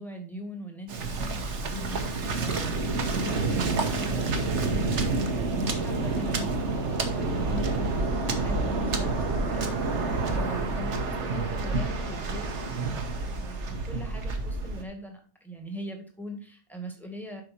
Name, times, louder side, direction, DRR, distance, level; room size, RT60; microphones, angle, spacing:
voice 1, 0.0-17.4, equal, ahead, 3 dB, 1.8 m, -41 dB
Waves surf, 0.9-14.8, right 3 dB, 80° right, 1.4 m, -28 dB
7.7 x 5.7 x 4.3 m, 0.38 s
omnidirectional pair, 1.2 m